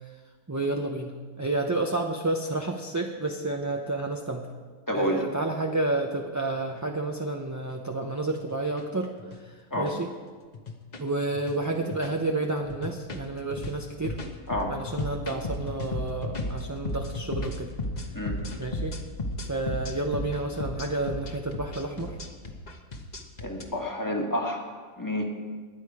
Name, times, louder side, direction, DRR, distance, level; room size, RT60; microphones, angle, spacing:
voice 1, 0.5-4.5 4.9-9.1 9.8-10.1 11.0-14.2 14.7-17.7 18.6-18.9 19.5-22.2, right 2 dB, 20° right, 2 dB, 0.5 m, -30 dB
voice 2, 4.9-5.2 9.7-10.0 14.5-14.8 18.1-18.4 23.4-25.2, left 1 dB, 15° left, 0 dB, 1.7 m, -29 dB
sound 1, 7.6-7.7 8.4-8.8 9.2-9.4 9.7-9.9 10.5-11.1 11.3-11.6 11.9-12.3 12.6-23.6, left 1 dB, 35° left, 1.2 m, -34 dB
21.5 x 8.7 x 4.9 m, 1.5 s
omnidirectional pair, 1.4 m